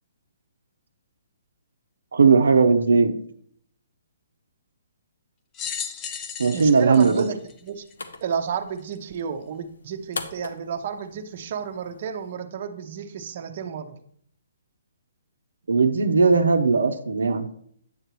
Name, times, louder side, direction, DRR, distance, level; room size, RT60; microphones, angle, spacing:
voice 1, 2.1-3.1 6.4-7.3 15.7-17.5, right 4 dB, 85° right, 6 dB, 0.7 m, -18 dB
sound 1, 5.5-8.2 8.9-9.0 10.1-10.2, left 7 dB, 25° left, 0.6 m, -35 dB
voice 2, 6.5-7.9 8.2-14.0, right 7 dB, 50° right, 5 dB, 0.8 m, -32 dB
sound 2, 7.3-12.3, left 3 dB, 85° left, 1.0 m, -41 dB
8.7 x 6.6 x 3.1 m, 0.64 s
hypercardioid pair, 140°, 0 cm